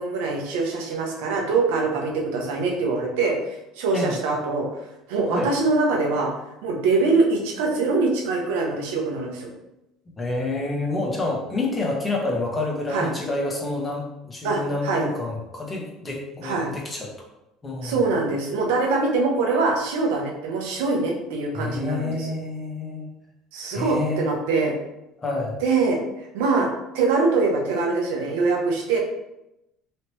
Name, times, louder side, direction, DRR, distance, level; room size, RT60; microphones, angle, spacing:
voice 1, 0.0-4.7 5.1-6.3 6.6-9.5 12.9-13.1 14.4-15.0 16.4-16.7 17.8-22.3 23.5-24.7 25.6-26.0 26.3-26.7 26.9-29.0, right 3 dB, 85° right, 0 dB, 0.8 m, -23 dB
voice 2, 10.2-17.1 17.6-18.0 21.5-23.1 23.7-24.2 25.2-25.6, left 2 dB, 25° left, -1 dB, 1.1 m, -28 dB
3.2 x 2.9 x 3.0 m, 0.88 s
supercardioid pair, 85°, 0 cm